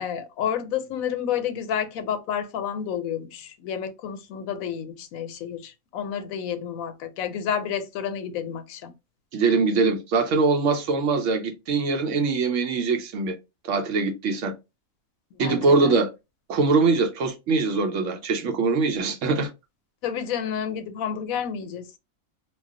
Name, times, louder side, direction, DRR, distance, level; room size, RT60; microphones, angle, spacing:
voice 1, 0.0-8.9 15.4-15.9 20.0-22.0, left 8 dB, 85° left, 1.0 m, -30 dB
voice 2, 9.3-13.4 13.7-14.5 15.4-16.1 16.5-19.5, right 4 dB, 70° right, 0.9 m, -22 dB
2.3 x 2.2 x 3.6 m
omnidirectional pair, 1.4 m